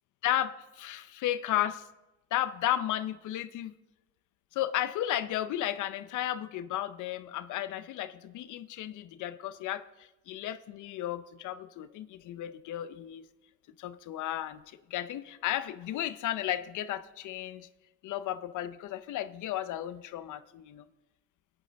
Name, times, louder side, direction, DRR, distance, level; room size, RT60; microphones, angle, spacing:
voice 1, 0.2-1.8 2.3-3.7 4.5-13.2 13.8-17.7 18.0-20.9, left 12 dB, 80° left, 13 dB, 0.6 m, -34 dB
18.5 x 8.9 x 3.4 m, 1.0 s
cardioid pair, 90°, 30 cm